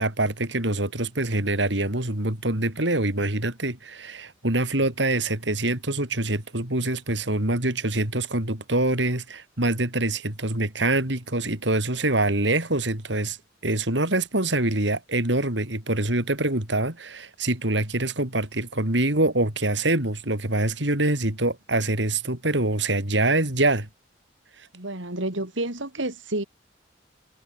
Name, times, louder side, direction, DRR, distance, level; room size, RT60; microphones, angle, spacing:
voice 1, 0.0-13.4 13.6-23.9, right 2 dB, 70° right, 4.8 m, -25 dB
voice 2, 24.7-26.4, right 1 dB, 85° right, 4.2 m, -30 dB
head